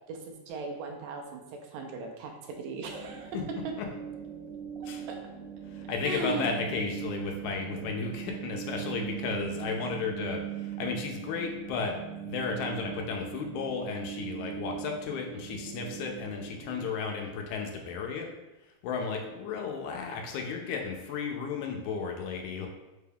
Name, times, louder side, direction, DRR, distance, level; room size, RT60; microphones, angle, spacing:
voice 1, 0.1-3.7 4.8-5.2 6.0-6.5, right 3 dB, 80° right, 2 dB, 1.8 m, -38 dB
sound 1, 2.8-16.9, right 10 dB, 65° right, 2.0 m, -40 dB
voice 2, 5.7-12.0 12.2-18.3 18.8-22.7, left 5 dB, 85° left, 2 dB, 2.0 m, -34 dB
5.1 x 2.3 x 3.3 m, 1.0 s
omnidirectional pair, 3.3 m